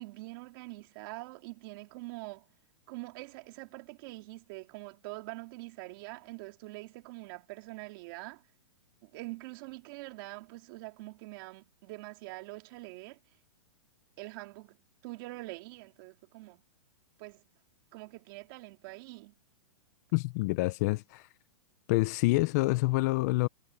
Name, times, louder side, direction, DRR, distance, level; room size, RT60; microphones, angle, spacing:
voice 1, 0.0-2.5 2.9-8.4 9.0-13.2 14.2-14.8 15.0-16.6 17.2-17.4 17.9-19.3, right 22 dB, 40° right, 3.7 m, -44 dB
voice 2, 20.1-21.3 21.9-23.5, left 22 dB, 30° left, 0.5 m, -27 dB
hypercardioid pair, 155°, 17 cm